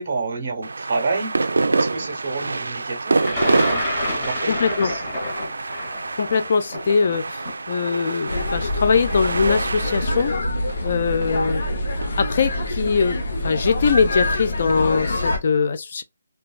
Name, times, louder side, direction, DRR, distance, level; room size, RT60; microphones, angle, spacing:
voice 1, 0.0-5.0, right 3 dB, 35° right, 0.8 m, -29 dB
sound 1, 0.6-12.1, right 3 dB, 85° right, 0.3 m, -27 dB
Thunder, 3.2-9.2 10.1-10.2 11.3-11.6 11.9-12.4, left 1 dB, 15° left, 1.1 m, -30 dB
voice 2, 4.5-4.9 6.2-10.3 10.8-11.6 12.2-13.2 13.4-16.0, left 5 dB, 35° left, 0.3 m, -21 dB
sound 2, 8.3-15.4, left 1 dB, 65° left, 0.8 m, -25 dB
3.0 x 2.2 x 2.3 m
hypercardioid pair, 175°, 0 cm